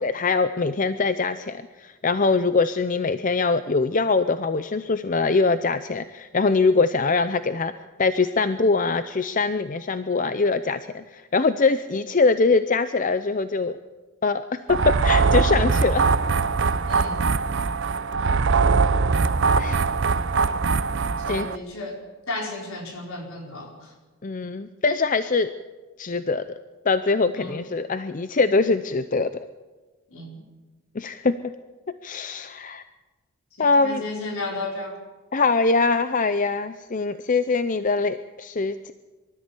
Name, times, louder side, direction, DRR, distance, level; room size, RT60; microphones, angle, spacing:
voice 1, 0.0-7.7 8.0-13.8 14.2-16.0 19.6-19.9 21.3-21.5 24.2-25.5 26.0-26.4 26.8-29.3 30.9-31.5 31.9-32.8 33.6-34.0 35.3-38.9, left 4 dB, 35° left, 12 dB, 0.5 m, -23 dB
sound 1, 14.7-21.6, right 4 dB, 55° right, 0.6 m, -21 dB
voice 2, 16.9-17.3 21.2-22.0 22.3-23.9 27.3-27.6 30.1-30.4 33.6-35.0, left 2 dB, 70° left, 1 dB, 4.8 m, -34 dB
24.0 x 13.5 x 8.4 m, 1.3 s
head